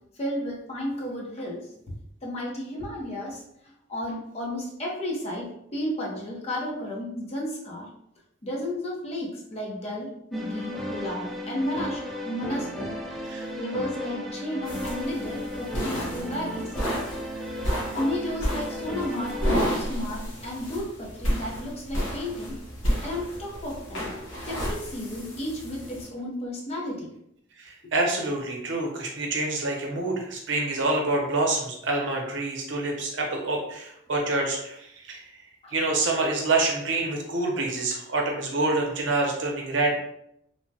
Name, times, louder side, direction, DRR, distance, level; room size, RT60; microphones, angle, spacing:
voice 1, 0.2-1.7 2.2-3.4 3.9-7.9 8.4-12.9 13.6-16.7 18.0-22.5 23.0-24.0 24.5-27.1 35.6-35.7, left 1 dB, 30° left, -3 dB, 0.7 m, -33 dB
sound 1, 10.3-19.6, left 1 dB, ahead, 0.8 m, -35 dB
sound 2, 14.7-26.1, equal, 70° left, 1.0 m, -31 dB
voice 2, 27.6-34.8 35.1-35.2 35.7-40.0, right 2 dB, 65° right, 0 dB, 0.7 m, -26 dB
3.2 x 2.1 x 2.7 m, 0.74 s
head